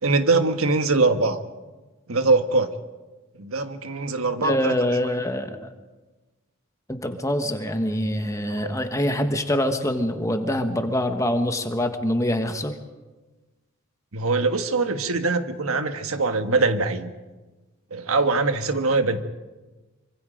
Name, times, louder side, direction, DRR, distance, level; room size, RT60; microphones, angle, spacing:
voice 1, 0.0-1.4 2.1-2.7 3.4-4.7 8.5-8.8 14.1-17.1 17.9-19.2, right 3 dB, 75° right, 8 dB, 1.4 m, -22 dB
voice 2, 4.4-5.7 6.9-12.8, left 1 dB, 15° left, 6 dB, 1.4 m, -25 dB
26.0 x 25.0 x 5.2 m, 1.2 s
head